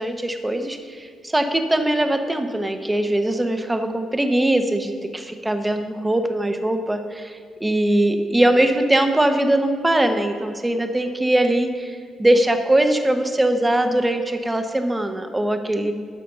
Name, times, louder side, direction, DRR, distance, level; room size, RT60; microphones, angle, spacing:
voice 1, 0.0-15.9, right 1 dB, 10° right, 6 dB, 0.9 m, -21 dB
12.5 x 4.2 x 6.5 m, 2.1 s
cardioid pair, 90°, 0 cm